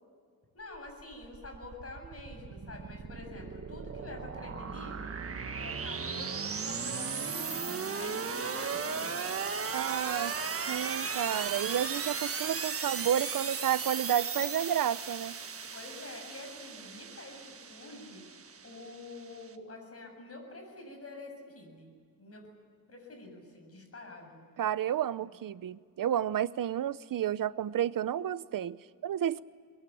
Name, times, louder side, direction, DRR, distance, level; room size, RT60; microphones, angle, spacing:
voice 1, 0.5-9.2 15.7-18.2 18.6-21.9 22.2-22.4 22.9-24.4 25.2-25.3, left 2 dB, 40° left, 3 dB, 7.4 m, -47 dB
sound 1, 0.8-19.5, right 5 dB, 40° right, 1.6 m, -36 dB
voice 2, 9.7-10.3 10.7-15.4 24.6-29.4, right 10 dB, 65° right, 16 dB, 0.8 m, -31 dB
24.0 x 21.5 x 8.6 m, 2.1 s
wide cardioid pair, 120°, 35 cm